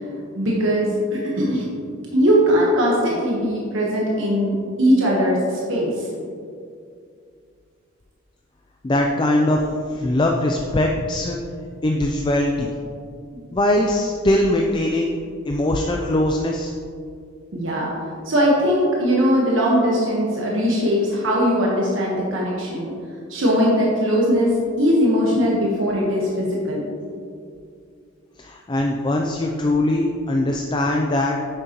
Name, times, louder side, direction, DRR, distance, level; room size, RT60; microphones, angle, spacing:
voice 1, 0.4-1.6 2.1-4.5 4.8-6.1 13.3-13.4 17.5-17.9 18.2-22.9 23.3-24.5 24.8-26.8, equal, 70° right, -4 dB, 1.3 m, -20 dB
voice 2, 8.8-11.4 11.8-12.7 13.5-15.1 15.5-16.7 28.4-31.4, left 1 dB, 25° left, 1 dB, 0.4 m, -21 dB
9.5 x 6.5 x 3.0 m, 2.3 s
head